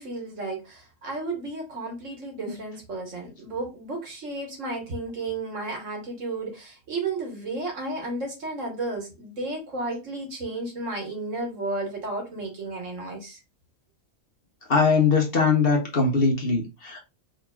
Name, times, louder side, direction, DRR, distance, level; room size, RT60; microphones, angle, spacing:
voice 1, 0.0-13.4, right 2 dB, 75° right, 1.8 m, -33 dB
voice 2, 14.7-17.0, left 4 dB, 50° left, 1.2 m, -21 dB
5.1 x 2.9 x 2.4 m
omnidirectional pair, 1.3 m